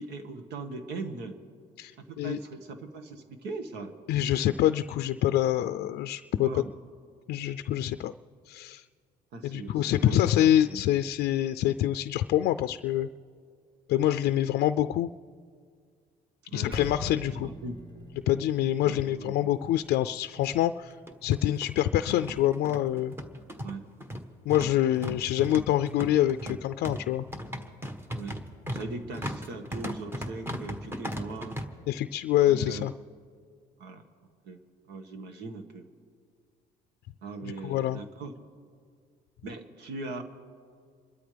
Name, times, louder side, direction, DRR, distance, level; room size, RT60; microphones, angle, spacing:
voice 1, 0.0-1.4 2.0-3.9 6.4-6.7 9.3-10.8 16.5-16.8 17.3-17.8 18.8-19.5 23.6-23.8 28.2-28.4 28.7-31.6 32.5-32.9 33.8-34.0 34.4-34.6 34.9-35.8 37.2-38.3 39.4-40.2, right 3 dB, 80° right, 7 dB, 1.7 m, -39 dB
voice 2, 1.8-2.4 4.1-6.6 7.3-8.1 8.5-8.8 9.4-13.1 13.9-15.1 16.5-17.5 18.3-21.0 21.2-23.1 24.5-27.3 31.9-32.9 37.6-38.0, left 12 dB, 70° left, 10 dB, 0.4 m, -26 dB
Percussion, 16.7-21.5, right 1 dB, 30° right, 4.8 m, -45 dB
sound 1, 19.6-19.7 20.0-20.1 20.9-31.6, equal, 15° right, 1.3 m, -37 dB
28.0 x 13.0 x 3.4 m, 2.1 s
cardioid pair, 110°, 17 cm